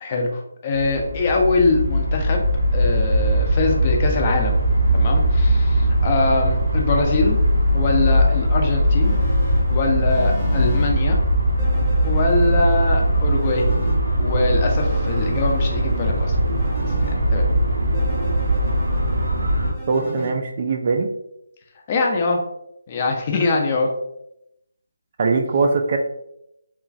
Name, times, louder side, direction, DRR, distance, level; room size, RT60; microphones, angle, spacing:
voice 1, 0.0-2.5 2.7-4.6 4.9-7.4 7.7-9.2 9.7-11.2 12.0-13.7 14.2-16.4 17.1-17.5 21.9-22.4 22.9-23.9, left 3 dB, 30° left, 1 dB, 0.5 m, -23 dB
sound 1, 0.7-19.7, right 1 dB, 85° right, 0.7 m, -20 dB
sound 2, 9.0-10.9 11.6-14.0 14.8-17.1 17.9-20.3, equal, 5° left, 0.8 m, -35 dB
voice 2, 19.9-21.1 25.2-26.0, right 4 dB, 40° right, 4 dB, 0.3 m, -21 dB
2.9 x 2.3 x 2.5 m, 0.81 s
figure-of-eight pair, 155°, 0 cm